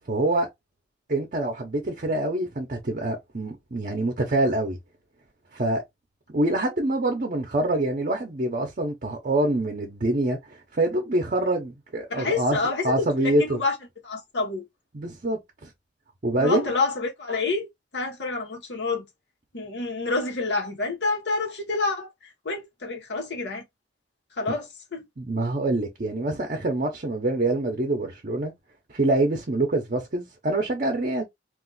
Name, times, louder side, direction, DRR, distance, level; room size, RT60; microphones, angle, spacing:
voice 1, 0.1-0.5 1.1-4.8 5.5-5.8 6.3-12.6 12.8-13.6 14.9-15.7 16.2-16.7 25.2-28.5 28.9-31.2, right 2 dB, 50° right, 0.7 m, -25 dB
voice 2, 12.1-13.8 14.0-14.6 16.4-19.1 19.5-23.6 24.4-25.1, left 3 dB, 80° left, 1.1 m, -28 dB
2.5 x 2.4 x 3.8 m
head